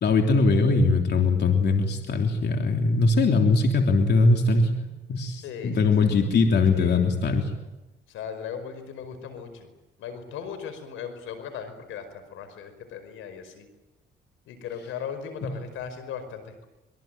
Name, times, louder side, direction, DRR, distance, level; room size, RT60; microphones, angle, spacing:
voice 1, 0.0-7.5 15.4-15.5, left 3 dB, 60° left, 3 dB, 3.4 m, -21 dB
voice 2, 5.4-5.9 6.7-7.1 8.1-9.7 10.0-13.7 14.5-16.7, left 7 dB, 90° left, 9 dB, 5.1 m, -38 dB
25.0 x 23.0 x 9.1 m, 1.0 s
cardioid pair, 90°, 20 cm